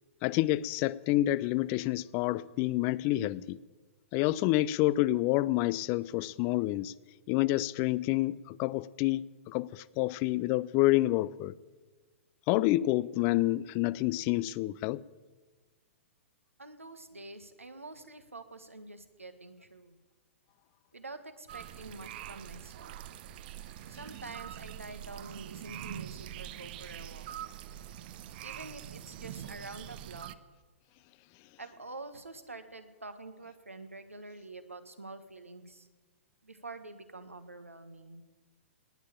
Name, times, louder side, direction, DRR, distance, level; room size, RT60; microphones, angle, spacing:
voice 1, 0.2-3.6 4.1-6.9 7.3-11.5 12.5-15.0, left 17 dB, 35° left, 0.4 m, -28 dB
voice 2, 16.6-20.0 20.9-23.0 23.9-27.3 28.4-30.3 31.6-35.9 36.4-38.2, right 2 dB, 85° right, 1.4 m, -47 dB
sound 1, 21.5-30.4, right 12 dB, 45° right, 0.7 m, -44 dB
18.5 x 6.6 x 8.8 m
figure-of-eight pair, 110°, 7 cm